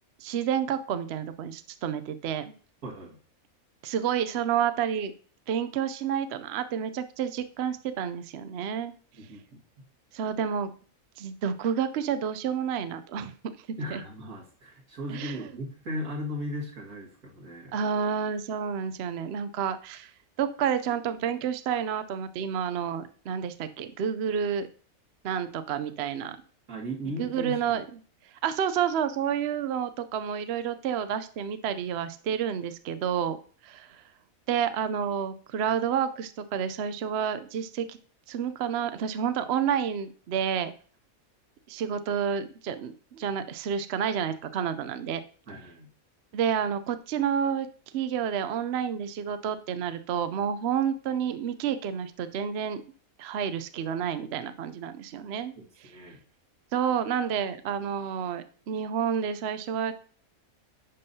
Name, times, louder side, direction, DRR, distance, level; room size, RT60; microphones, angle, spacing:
voice 1, 0.2-2.5 3.8-5.1 5.5-8.9 10.1-10.7 11.2-14.0 15.1-15.4 17.7-20.1 20.4-24.7 25.2-26.4 27.2-27.8 28.4-33.4 33.6-34.0 34.5-38.0 38.3-40.7 41.7-45.2 46.3-47.7 47.9-52.8 53.2-55.5 56.7-59.9, right 8 dB, 60° right, 11 dB, 0.7 m, -29 dB
voice 2, 2.8-3.2 9.1-9.6 13.8-17.8 26.7-27.6 45.5-45.9 55.6-56.2, equal, 85° right, -3 dB, 2.3 m, -37 dB
11.0 x 5.3 x 2.7 m, 0.42 s
omnidirectional pair, 1.5 m